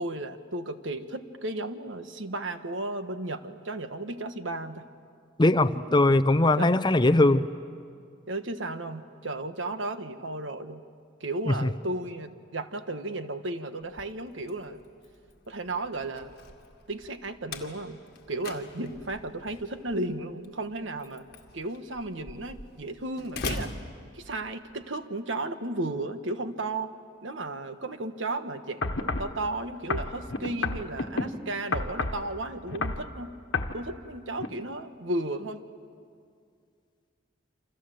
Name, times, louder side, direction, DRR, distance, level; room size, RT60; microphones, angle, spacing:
voice 1, 0.0-4.9 6.6-6.7 8.3-10.8 11.2-14.8 15.5-16.3 16.9-18.0 18.3-21.2 21.5-23.7 24.1-26.9 27.2-33.3 33.7-35.6, right 2 dB, 80° right, 9 dB, 1.4 m, -34 dB
voice 2, 5.4-7.5 11.5-11.7, left 2 dB, 25° left, 11 dB, 0.7 m, -21 dB
Slam, 13.8-24.7, left 3 dB, 55° left, 2.0 m, -43 dB
sound 1, 28.8-29.3 29.9-31.3 31.7-32.2 32.7-33.1 33.5-33.8 34.4-34.5, left 3 dB, 75° left, 1.4 m, -29 dB
29.0 x 26.5 x 7.8 m, 2.2 s
head